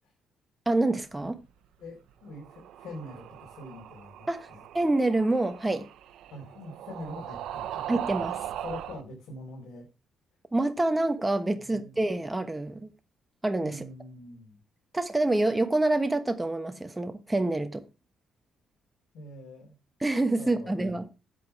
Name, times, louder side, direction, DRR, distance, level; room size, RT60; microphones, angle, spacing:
voice 1, 0.7-1.4 4.3-4.5 4.7-5.9 7.9-8.4 10.5-12.9 13.4-13.8 14.9-17.8 20.0-21.1, right 2 dB, 15° right, 1.2 m, -26 dB
voice 2, 1.8-4.6 6.3-8.0 8.6-9.8 11.5-12.0 13.6-14.6 19.1-19.7 20.4-20.8, left 1 dB, 75° left, 4.6 m, -44 dB
sound 1, 2.3-9.0, right 11 dB, 80° right, 0.9 m, -39 dB
8.4 x 8.3 x 4.6 m
cardioid pair, 90°, 0 cm